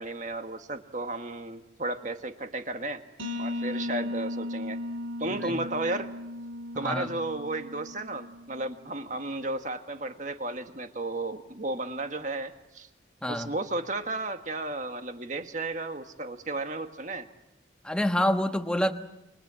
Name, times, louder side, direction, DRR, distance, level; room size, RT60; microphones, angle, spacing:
voice 1, 0.0-3.0 3.4-4.8 5.2-6.1 6.7-12.9 13.3-17.3, right 2 dB, 40° right, 7 dB, 1.6 m, -33 dB
sound 1, 3.2-8.8, left 1 dB, 85° right, 2.2 m, -36 dB
voice 2, 6.7-7.1 13.2-13.5 17.8-18.9, left 1 dB, 5° left, 6 dB, 1.2 m, -27 dB
29.0 x 25.5 x 7.6 m, 0.90 s
head